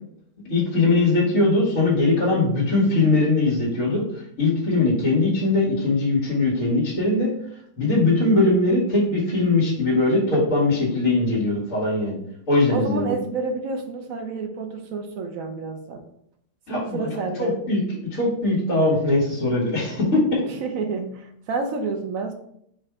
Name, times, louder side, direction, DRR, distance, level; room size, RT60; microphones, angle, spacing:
voice 1, 0.5-4.0 4.4-7.3 7.8-12.2 12.5-13.2 16.7-17.0 17.4-17.8 18.1-20.4, left 2 dB, 50° left, -5 dB, 2.1 m, -20 dB
voice 2, 12.7-16.0 16.7-17.6 20.5-22.3, right 4 dB, 60° right, 5 dB, 1.0 m, -29 dB
4.3 x 2.6 x 4.6 m, 0.70 s
omnidirectional pair, 1.8 m